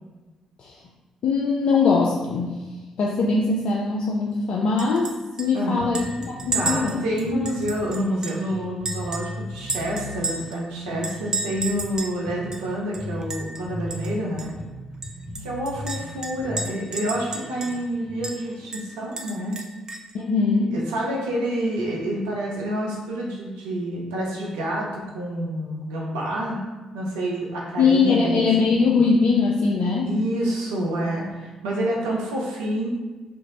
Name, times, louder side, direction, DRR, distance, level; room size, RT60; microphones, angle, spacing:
voice 1, 1.2-2.6 3.0-5.1 5.4-7.0 20.1-20.8 27.8-30.1, left 4 dB, 60° left, -2 dB, 0.4 m, -21 dB
Chink clink, 4.8-5.1 5.4-5.5 6.0-8.5 8.9-10.6 11.0-12.2 12.5-12.6 12.9-13.6 13.9-14.1 14.4-14.5 15.0-17.9 18.2-18.4 18.7-20.1, right 3 dB, 30° right, 0.5 m, -32 dB
voice 2, 5.5-5.9 6.5-14.6 15.4-19.6 20.7-26.6 26.9-28.5 30.0-32.9, right 1 dB, 80° right, -3 dB, 0.7 m, -28 dB
sound 1, 5.8-18.7, left 1 dB, 85° left, 1.2 m, -38 dB
4.5 x 3.0 x 2.7 m, 1.2 s
hypercardioid pair, 40°, 2 cm